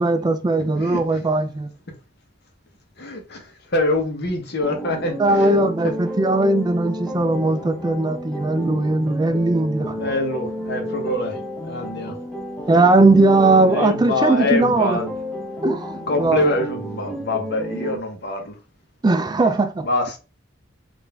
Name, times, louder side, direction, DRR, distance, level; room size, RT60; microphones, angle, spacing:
voice 1, 0.0-1.7 5.2-10.0 12.7-15.0 15.6-16.6 19.0-19.9, right 2 dB, 20° right, 0.3 m, -19 dB
voice 2, 3.0-5.6 10.0-12.2 13.7-15.1 16.1-18.6 19.8-20.2, left 2 dB, 60° left, 1.0 m, -25 dB
sound 1, 4.6-18.0, equal, 5° left, 0.8 m, -31 dB
3.8 x 2.6 x 3.3 m
head